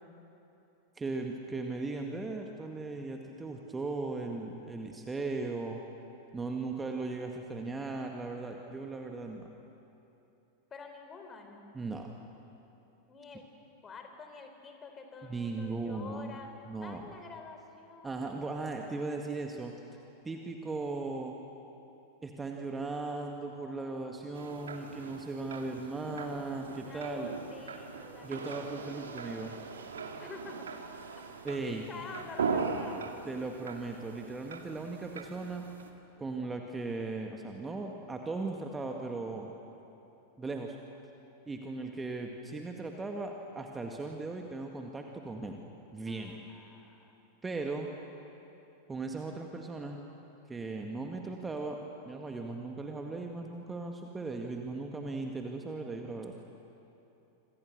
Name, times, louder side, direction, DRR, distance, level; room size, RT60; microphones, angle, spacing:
voice 1, 1.0-5.8 6.3-9.5 11.7-12.1 15.2-16.3 16.7-17.1 18.0-19.7 20.2-21.3 22.2-27.3 28.2-29.5 31.4-31.8 33.3-35.6 36.2-39.5 40.4-40.8 41.5-45.6 45.9-46.4 47.4-47.9 48.9-50.0 50.5-51.8 52.0-56.3, right 3 dB, 15° right, 2 dB, 1.9 m, -37 dB
voice 2, 10.7-11.7 13.1-13.5 13.8-16.5 16.8-18.4 26.8-28.6 30.2-30.8 31.9-33.0 35.0-35.1 46.1-47.2, left 4 dB, 20° left, 5 dB, 3.7 m, -48 dB
sound 1, 24.3-35.9, right 5 dB, 70° right, 2.1 m, -40 dB
27.5 x 26.5 x 6.6 m, 2.9 s
figure-of-eight pair, 90°, 0 cm